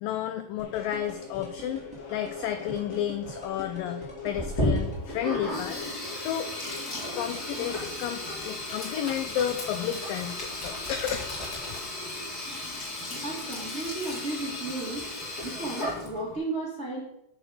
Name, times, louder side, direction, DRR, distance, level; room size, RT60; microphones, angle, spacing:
voice 1, 0.0-5.8 6.2-6.5 7.2-11.8, left 10 dB, 90° left, 7 dB, 2.0 m, -32 dB
sound 1, 0.6-6.9, left 4 dB, 55° left, 1.2 m, -43 dB
sound 2, 0.6-5.8, right 1 dB, 5° right, 1.0 m, -44 dB
Sink (filling or washing), 4.3-16.4, left 1 dB, 35° left, 1.8 m, -34 dB
voice 2, 13.2-15.1 15.4-17.0, right 2 dB, 80° right, -4 dB, 0.6 m, -34 dB
7.8 x 6.5 x 6.2 m, 0.83 s
omnidirectional pair, 4.6 m